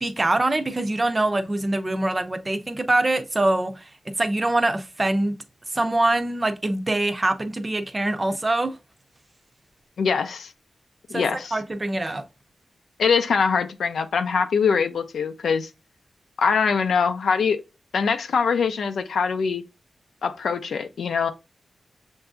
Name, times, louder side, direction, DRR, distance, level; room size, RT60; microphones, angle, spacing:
voice 1, 0.0-5.4 5.7-8.8 11.1-12.2, right 2 dB, 30° right, 0.6 m, -24 dB
voice 2, 10.0-10.5 11.1-11.6 13.0-15.7 16.4-17.6 17.9-19.6 20.2-21.3, left 5 dB, 85° left, 0.5 m, -23 dB
6.7 x 2.6 x 2.3 m
wide cardioid pair, 80°, 0 cm